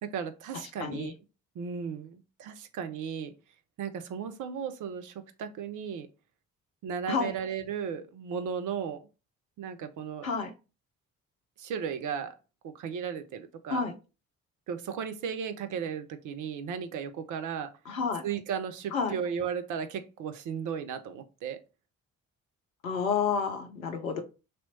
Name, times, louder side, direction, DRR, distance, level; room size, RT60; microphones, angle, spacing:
voice 1, 0.0-1.1 1.5-3.3 3.8-6.1 6.8-9.1 9.6-10.3 11.6-12.3 12.6-13.8 14.7-17.7 18.2-21.6, right 7 dB, 50° right, 9 dB, 0.7 m, -35 dB
voice 2, 0.8-1.1 7.1-7.3 10.2-10.5 13.7-13.9 17.9-18.2 18.9-19.2 22.8-24.2, left 5 dB, 80° left, 5 dB, 0.6 m, -30 dB
3.1 x 3.0 x 4.1 m, 0.30 s
figure-of-eight pair, 40°, 41 cm